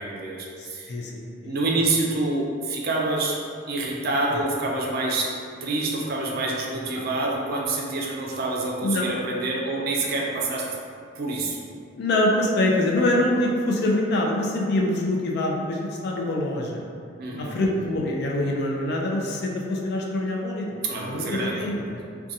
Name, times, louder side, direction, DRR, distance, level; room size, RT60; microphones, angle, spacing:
voice 1, 0.0-0.9 1.4-3.4 3.7-5.3 5.6-10.7 11.2-11.6 17.2-17.6 20.8-21.7 22.0-22.1, right 2 dB, 50° right, -2 dB, 0.4 m, -27 dB
voice 2, 0.6-1.5 8.8-9.1 12.0-16.8 17.4-22.0, left 1 dB, 55° left, -1 dB, 0.4 m, -25 dB
2.6 x 2.2 x 2.6 m, 2.3 s
head